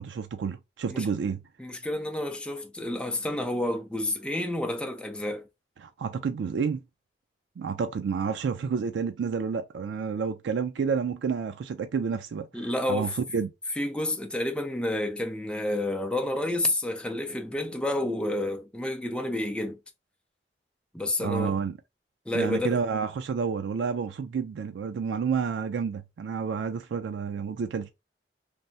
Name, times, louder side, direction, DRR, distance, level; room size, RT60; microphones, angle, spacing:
voice 1, 0.0-1.4 5.8-6.8 7.6-13.5 21.2-21.7 22.3-27.9, right 6 dB, 85° right, 0.3 m, -30 dB
voice 2, 1.6-5.5 12.5-13.1 13.8-19.8 20.9-21.6 22.3-22.8, left 1 dB, 5° left, 0.4 m, -30 dB
3.3 x 2.0 x 2.6 m
head